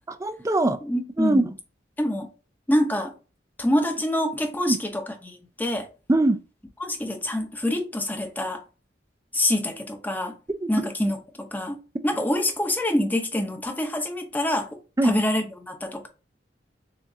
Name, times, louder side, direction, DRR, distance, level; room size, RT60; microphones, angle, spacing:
voice 1, 0.1-0.8 1.2-1.4 4.7-4.8 6.1-6.4 10.6-10.7 15.0-15.1, right 2 dB, 15° right, 0.4 m, -21 dB
voice 2, 0.8-1.5 2.0-2.3 2.7-3.1 3.6-5.9 6.8-8.6 9.3-10.4 10.7-11.8 12.0-16.1, left 1 dB, 10° left, 0.7 m, -26 dB
6.9 x 2.5 x 2.7 m
head